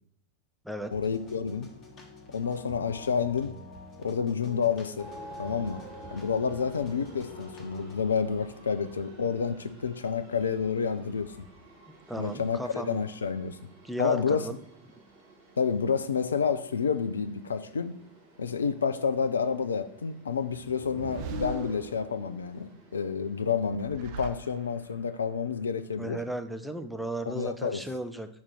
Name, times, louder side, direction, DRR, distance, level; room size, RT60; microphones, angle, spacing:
sound 1, 0.8-7.9, left 2 dB, 30° left, 1.3 m, -46 dB
voice 1, 0.9-1.7 2.3-3.5 4.0-5.1 5.4-5.8 6.1-11.5 12.2-13.6 14.0-14.5 15.6-18.0 18.4-26.2 27.3-27.8, left 6 dB, 70° left, 12 dB, 0.5 m, -29 dB
sound 2, 5.0-23.6, right 1 dB, 65° right, 2.4 m, -54 dB
voice 2, 12.1-13.0 13.8-14.6 26.0-28.3, right 1 dB, ahead, 6 dB, 0.6 m, -35 dB
sound 3, 20.5-22.5 23.5-25.0, right 4 dB, 45° right, 0.8 m, -40 dB
5.9 x 4.2 x 6.3 m, 0.68 s
figure-of-eight pair, 90°, 0 cm